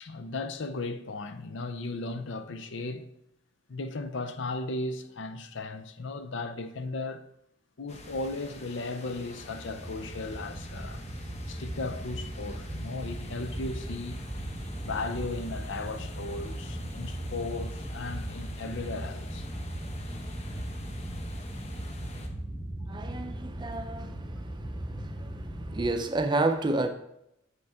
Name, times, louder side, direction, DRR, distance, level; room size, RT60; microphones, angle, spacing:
voice 1, 0.0-3.1 3.7-7.3 7.8-11.0 11.5-14.2 14.8-19.5, left 3 dB, 65° left, 0.6 m, -36 dB
sound 1, 7.9-22.3, left 1 dB, 35° left, 0.8 m, -46 dB
sound 2, 9.4-25.9, right 1 dB, 5° left, 1.0 m, -38 dB
voice 2, 22.9-26.9, right 2 dB, 25° right, 0.5 m, -31 dB
7.9 x 5.3 x 3.6 m
head